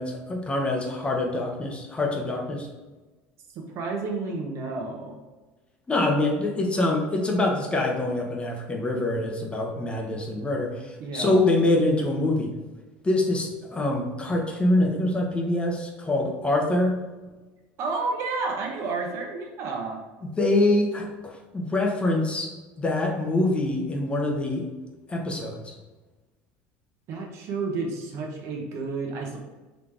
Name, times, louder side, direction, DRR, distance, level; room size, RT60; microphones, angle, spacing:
voice 1, 0.0-2.7 5.9-12.5 13.0-17.0 20.4-22.5 22.8-24.7 25.1-25.6, left 2 dB, 20° left, 1 dB, 0.9 m, -25 dB
voice 2, 3.5-5.2 11.0-11.4 17.8-20.0 27.1-29.4, right 4 dB, 55° right, 0 dB, 1.0 m, -31 dB
4.0 x 3.2 x 3.6 m, 1.2 s
supercardioid pair, 95°, 6 cm